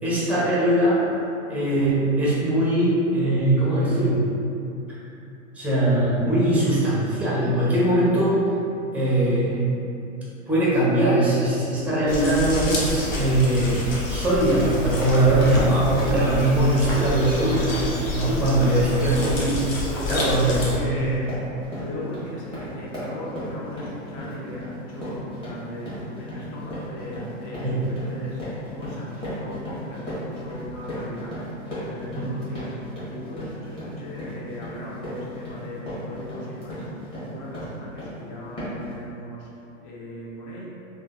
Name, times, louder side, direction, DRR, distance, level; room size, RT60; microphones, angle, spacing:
voice 1, 0.0-1.1 1.5-4.2 5.5-8.4 8.9-9.7 10.5-13.8 14.1-17.8 18.1-19.6 20.1-20.6 20.9-21.0 27.6-27.8 32.2-32.3, right 1 dB, 5° right, -8 dB, 0.5 m, -21 dB
sound 1, 12.1-20.8, left 2 dB, 80° left, 0.8 m, -28 dB
voice 2, 18.4-19.3 19.9-21.4 21.8-40.7, left 1 dB, 40° left, -5 dB, 0.7 m, -38 dB
sound 2, 20.4-20.6 20.9-38.2 38.6-38.9, equal, 15° left, 1.0 m, -35 dB
3.2 x 2.2 x 2.3 m, 2.7 s
hypercardioid pair, 115°, 40 cm